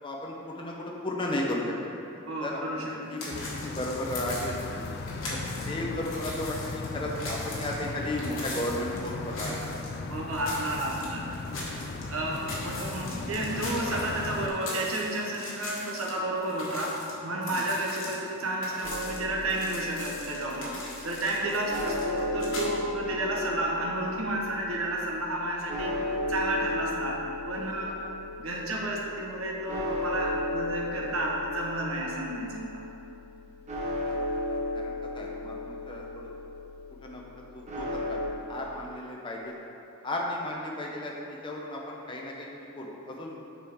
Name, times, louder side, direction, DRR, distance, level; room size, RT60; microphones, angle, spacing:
voice 1, 0.0-4.8 5.3-5.4 5.6-9.8 17.5-17.6 21.5-21.6 27.9-28.2 34.1-36.3 37.0-37.2 37.5-39.6 40.0-42.5 42.7-43.4, left 1 dB, 25° left, -2 dB, 0.7 m, -35 dB
voice 2, 2.2-3.2 10.1-11.2 12.1-16.9 17.2-20.7 21.0-26.0 26.3-27.9 28.4-32.8, right 1 dB, 80° right, -1 dB, 1.0 m, -31 dB
sound 1, 3.2-5.7 6.0-9.9 10.3-12.0 12.3-16.1 16.4-22.7, left 2 dB, 70° left, 1.4 m, -40 dB
sound 2, 3.3-14.5, left 3 dB, 50° left, 0.3 m, -37 dB
sound 3, 18.8-38.3, left 1 dB, 35° right, 0.9 m, -35 dB
7.3 x 5.4 x 3.6 m, 2.9 s
head